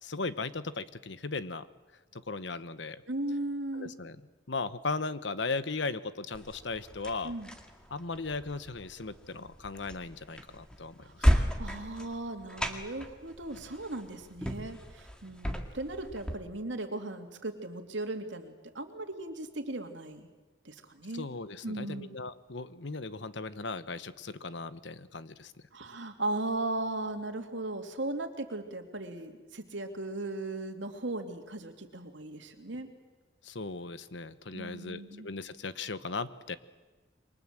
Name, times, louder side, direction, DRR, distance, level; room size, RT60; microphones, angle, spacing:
voice 1, 0.0-1.7 2.1-3.0 3.7-4.2 4.5-7.3 7.9-11.3 15.3-15.4 21.1-25.5 33.4-36.6, left 3 dB, 70° left, 14 dB, 1.1 m, -37 dB
voice 2, 3.1-3.9 7.2-7.5 11.0-20.3 20.6-21.3 21.6-22.1 25.7-32.9 34.5-35.3, right 2 dB, 75° right, 5 dB, 2.8 m, -37 dB
sound 1, 6.3-16.3, equal, 5° left, 2.0 m, -34 dB
28.0 x 24.0 x 7.7 m, 1.3 s
head